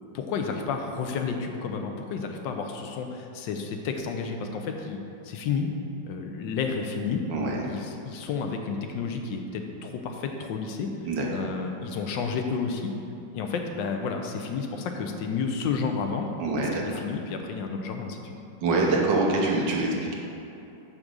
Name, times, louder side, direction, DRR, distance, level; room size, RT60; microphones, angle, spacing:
voice 1, 0.1-5.0 5.2-5.7 6.1-7.2 7.6-10.9 11.3-12.9 13.3-16.3 16.8-18.3, left 5 dB, 80° left, 4 dB, 1.4 m, -31 dB
voice 2, 7.3-7.7 11.0-11.3 16.4-16.9 18.6-20.1, right 2 dB, 75° right, -1 dB, 1.6 m, -25 dB
6.2 x 5.1 x 6.2 m, 2.9 s
omnidirectional pair, 2.0 m